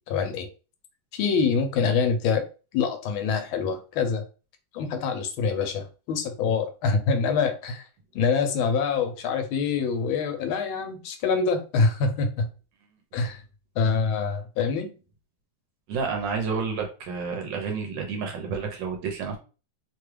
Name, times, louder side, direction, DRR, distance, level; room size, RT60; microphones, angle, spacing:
voice 1, 0.1-0.5 1.1-2.4 2.7-4.2 4.7-7.8 8.1-12.5 13.1-13.4 13.8-14.9, left 5 dB, 80° left, 7 dB, 1.4 m, -25 dB
voice 2, 15.9-19.4, right 5 dB, 70° right, 2 dB, 1.3 m, -30 dB
3.3 x 2.3 x 3.1 m, 0.34 s
omnidirectional pair, 2.3 m